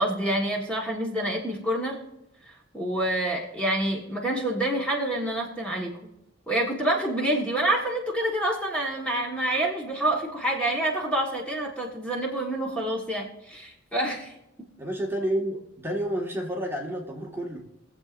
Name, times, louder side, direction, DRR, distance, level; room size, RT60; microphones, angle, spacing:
voice 1, 0.0-2.0 2.7-5.9 6.5-14.3, right 1 dB, 5° left, -2 dB, 1.4 m, -27 dB
voice 2, 14.8-17.6, right 1 dB, 10° right, -1 dB, 1.6 m, -30 dB
22.5 x 7.5 x 2.5 m, 0.90 s
head